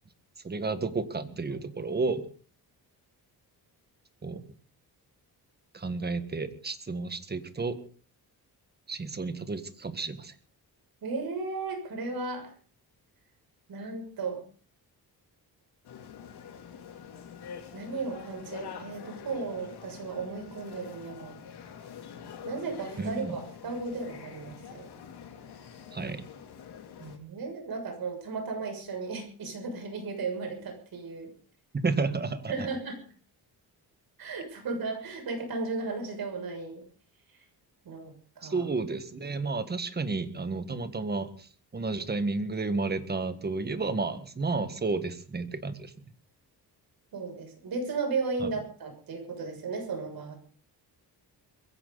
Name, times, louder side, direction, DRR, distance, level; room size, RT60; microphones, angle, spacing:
voice 1, 0.4-2.2 4.2-4.4 5.7-7.8 8.9-10.3 23.0-23.4 25.9-26.2 31.7-32.7 38.4-46.0 48.4-48.5, right 3 dB, 25° right, 10 dB, 1.7 m, -32 dB
voice 2, 11.0-12.5 13.7-14.4 17.7-21.3 22.4-24.9 27.0-31.3 32.5-33.0 34.2-36.8 37.9-38.7 47.1-50.3, right 4 dB, 65° right, 4 dB, 6.9 m, -35 dB
sound 1, 15.8-27.2, left 7 dB, 80° left, 3.3 m, -45 dB
22.0 x 16.0 x 4.1 m, 0.42 s
wide cardioid pair, 155°, 39 cm